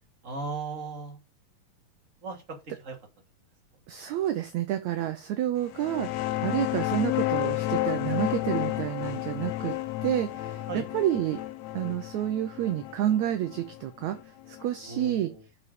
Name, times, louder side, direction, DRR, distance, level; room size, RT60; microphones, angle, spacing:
voice 1, 0.2-1.2 2.2-2.6 2.8-3.0 10.7-10.9 14.8-15.4, right 4 dB, 25° right, 2 dB, 2.4 m, -36 dB
voice 2, 3.9-9.7 10.0-11.4 11.7-14.2 14.5-15.3, right 11 dB, 70° right, 9 dB, 1.8 m, -29 dB
sound 1, 5.7-15.0, left 15 dB, 75° left, 1.7 m, -31 dB
7.0 x 6.4 x 6.9 m, 0.26 s
omnidirectional pair, 4.1 m